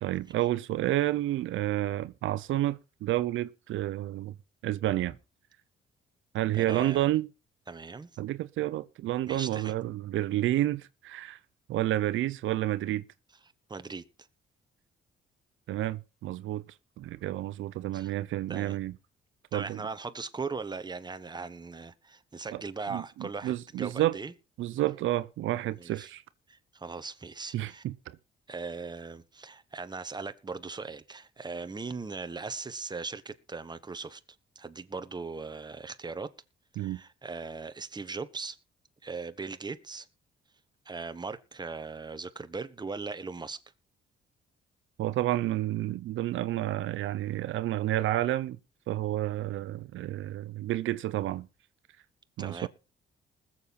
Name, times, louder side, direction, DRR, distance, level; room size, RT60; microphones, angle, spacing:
voice 1, 0.0-4.3 4.6-5.1 6.3-7.3 8.2-11.4 11.7-13.0 15.7-16.6 17.0-18.9 19.5-19.8 22.5-22.6 22.9-24.2 24.6-26.2 27.5-28.2 36.8-37.0 45.0-48.6 48.9-51.5 52.4-52.7, right 14 dB, 80° right, 0.7 m, -30 dB
voice 2, 6.5-7.0 7.7-8.1 9.3-9.7 13.7-14.0 17.9-18.1 18.5-18.8 19.5-24.3 25.7-26.1 26.5-27.8 28.5-34.2 34.5-36.3 36.7-38.6 39.0-40.1 40.8-43.6 52.4-52.7, right 4 dB, 20° right, 1.3 m, -39 dB
20.5 x 7.4 x 4.2 m
cardioid pair, 90°, 20 cm